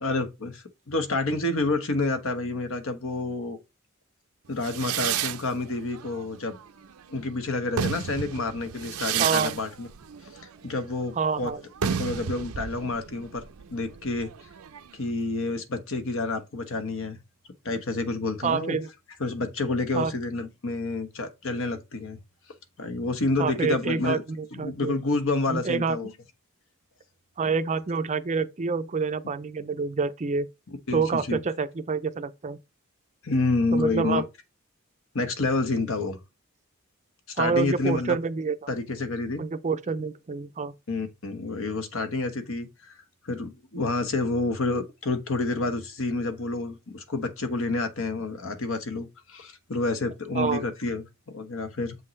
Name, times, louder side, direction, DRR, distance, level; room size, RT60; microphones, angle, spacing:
voice 1, 0.0-3.6 4.5-6.6 7.1-9.9 10.6-11.5 11.8-13.4 13.7-14.3 14.9-17.2 17.6-18.8 19.2-22.2 22.8-24.2 24.5-26.1 30.9-31.4 33.2-34.2 35.1-36.2 37.3-38.2 38.7-39.4 40.9-43.0 43.2-52.0, left 3 dB, 65° left, 1.2 m, -29 dB
sound 1, 4.6-7.1 7.5-15.1, right 8 dB, 80° right, 0.5 m, -32 dB
voice 2, 9.2-9.6 11.2-11.6 18.4-18.9 19.9-20.1 23.4-25.0 25.5-26.0 27.4-30.5 30.9-32.6 33.7-34.2 37.4-38.7 39.4-40.7 50.3-50.6, right 5 dB, 30° right, 0.5 m, -27 dB
7.4 x 5.4 x 3.2 m
head